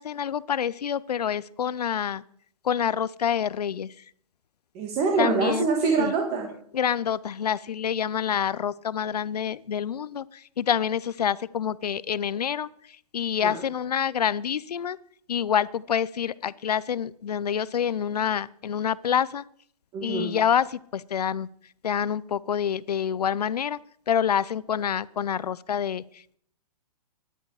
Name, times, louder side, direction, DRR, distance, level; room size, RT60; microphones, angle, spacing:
voice 1, 0.0-2.2 2.7-3.9 5.2-5.7 6.0-6.1 6.7-10.2 10.6-12.7 13.1-15.0 15.3-19.4 20.0-20.7 20.9-21.5 21.8-23.8 24.1-26.0, left 8 dB, 90° left, 19 dB, 0.7 m, -27 dB
voice 2, 4.7-6.5 13.4-13.6 19.9-20.3, right 4 dB, 30° right, 2 dB, 2.5 m, -25 dB
18.5 x 11.0 x 4.9 m, 0.64 s
hypercardioid pair, 140°, 20 cm